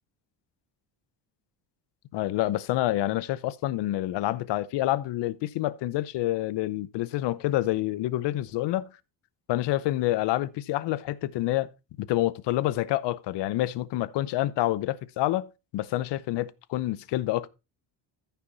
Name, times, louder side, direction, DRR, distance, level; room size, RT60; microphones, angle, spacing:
voice 1, 2.1-8.9 9.5-11.7 12.0-15.5 15.7-17.5, left 15 dB, 75° left, 0.8 m, -27 dB
14.0 x 5.8 x 4.0 m
cardioid pair, 155°, 42 cm